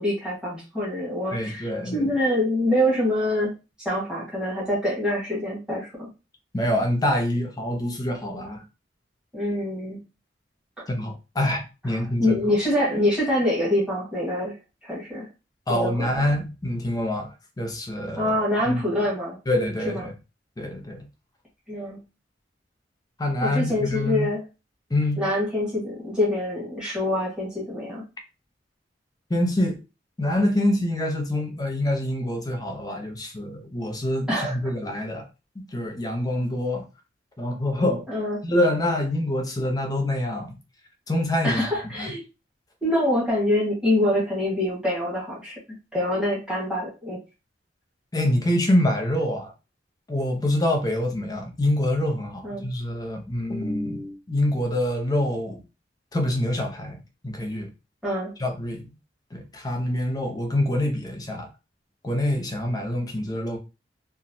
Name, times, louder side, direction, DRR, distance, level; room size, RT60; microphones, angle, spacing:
voice 1, 0.0-3.5 3.8-6.1 9.3-10.0 10.8-10.9 11.9-14.5 14.8-15.3 15.7-16.3 18.2-19.4 19.8-20.1 21.7-22.0 23.4-24.4 25.2-28.0 34.3-34.5 38.1-38.4 41.4-42.2 42.8-45.6 45.9-47.2 52.4-52.7 58.0-58.3, left 1 dB, 5° right, 1.3 m, -25 dB
voice 2, 1.3-2.0 6.5-8.6 10.9-12.4 15.7-18.3 18.7-18.8 19.5-20.1 20.6-21.1 23.2-24.3 24.9-25.3 29.3-29.8 30.2-35.2 35.7-36.8 37.4-38.0 38.4-40.6 41.1-41.6 42.0-42.1 48.1-49.5 50.1-55.6 56.1-57.0 57.2-57.7 58.4-58.9 59.3-61.5 62.0-63.6, left 1 dB, 20° left, 0.7 m, -25 dB
3.0 x 2.4 x 2.7 m
head